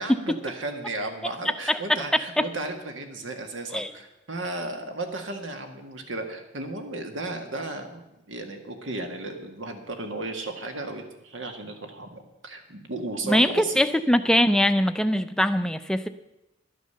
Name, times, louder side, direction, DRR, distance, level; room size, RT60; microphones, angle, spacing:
voice 1, 0.0-13.8, right 2 dB, 85° right, 5 dB, 1.7 m, -34 dB
voice 2, 13.2-16.1, equal, 5° left, 9 dB, 0.4 m, -22 dB
11.5 x 9.3 x 6.8 m, 0.92 s
head